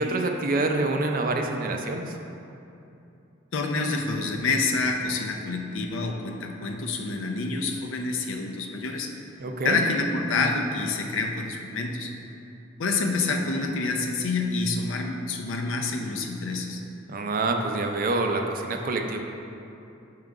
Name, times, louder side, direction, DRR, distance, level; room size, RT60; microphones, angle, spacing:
voice 1, 0.0-2.2 9.4-9.8 17.1-19.2, right 2 dB, 45° right, 3 dB, 0.5 m, -26 dB
voice 2, 3.5-9.1 9.6-12.1 12.8-16.8, left 3 dB, 85° left, 2 dB, 0.6 m, -27 dB
6.3 x 3.8 x 4.6 m, 2.8 s
head